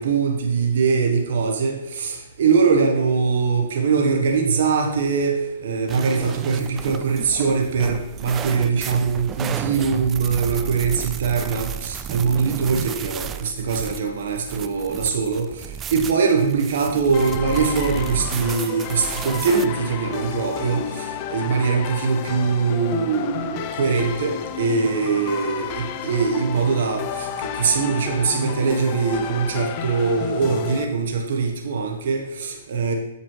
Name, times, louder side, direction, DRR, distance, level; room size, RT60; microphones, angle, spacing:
voice 1, 0.0-32.9, right 5 dB, 65° right, 3 dB, 1.1 m, -22 dB
sound 1, 5.9-19.7, right 8 dB, 20° right, 0.3 m, -33 dB
sound 2, 17.1-30.8, left 9 dB, 40° left, 0.5 m, -32 dB
7.7 x 7.1 x 3.1 m, 1.0 s
hypercardioid pair, 145°, 0 cm